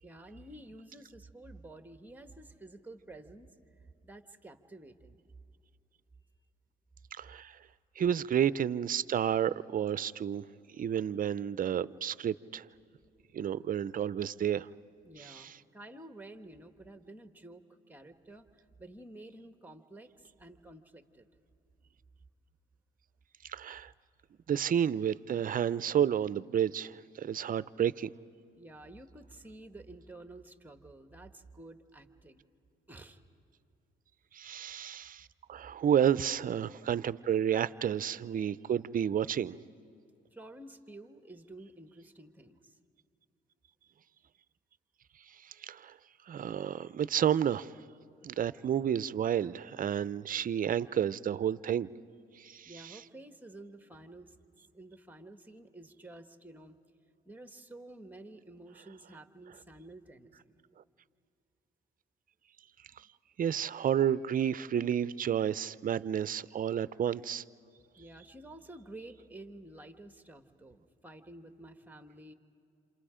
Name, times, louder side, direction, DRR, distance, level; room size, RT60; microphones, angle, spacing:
voice 1, 0.0-3.5 4.0-5.2 15.0-21.3 28.6-32.4 32.9-33.2 40.3-42.8 52.6-54.3 54.7-56.8 57.2-60.5 68.0-72.3, right 2 dB, 10° right, 1.3 m, -51 dB
voice 2, 7.1-7.6 8.0-10.5 10.7-12.7 13.3-14.7 15.2-15.5 23.5-23.9 24.5-28.1 34.3-39.6 45.4-45.9 46.3-47.7 48.2-51.9 52.4-53.0 63.4-67.4, right 9 dB, 45° right, 0.5 m, -31 dB
28.5 x 27.5 x 5.0 m
cardioid pair, 90°, 20 cm